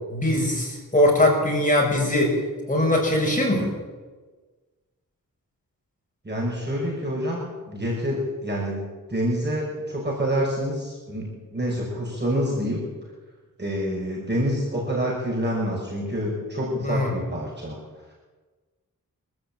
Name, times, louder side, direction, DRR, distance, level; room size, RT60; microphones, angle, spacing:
voice 1, 0.1-2.4 2.7-3.7 16.8-17.1, left 1 dB, 25° left, -1 dB, 6.1 m, -21 dB
voice 2, 6.2-12.8 13.6-17.8, equal, 30° right, -3 dB, 6.2 m, -27 dB
26.0 x 14.0 x 8.9 m, 1.3 s
wide cardioid pair, 135°, 34 cm